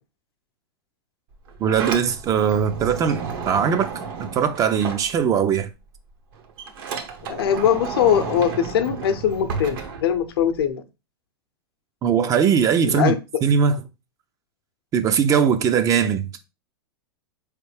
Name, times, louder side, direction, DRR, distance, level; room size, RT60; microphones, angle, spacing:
Sliding door, 1.3-5.6 6.0-10.7, right 5 dB, 60° right, 0.9 m, -32 dB
voice 1, 1.6-3.9 4.2-5.7 12.0-13.2 13.4-13.8 14.9-16.3, right 7 dB, 25° right, 0.4 m, -20 dB
voice 2, 7.3-10.8 12.9-13.1, left 9 dB, 70° left, 0.7 m, -21 dB
4.2 x 3.2 x 3.2 m
hypercardioid pair, 115°, 13 cm